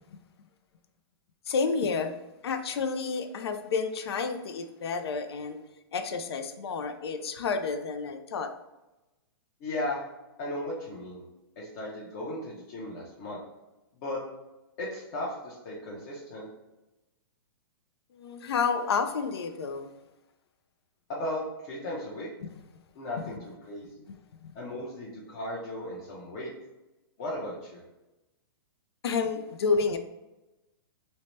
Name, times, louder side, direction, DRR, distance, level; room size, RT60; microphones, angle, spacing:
voice 1, 1.5-2.1 2.4-5.6 5.9-8.5 18.1-19.9 22.4-22.5 24.1-24.2 29.0-30.0, left 5 dB, 85° left, 8 dB, 0.4 m, -30 dB
voice 2, 9.6-10.0 10.4-11.2 11.6-13.4 14.0-14.2 14.8-16.5 21.1-22.3 22.9-24.0 24.5-26.5 27.2-27.8, left 1 dB, 45° left, -5 dB, 0.7 m, -36 dB
2.7 x 2.1 x 3.0 m, 1.0 s
hypercardioid pair, 140°, 13 cm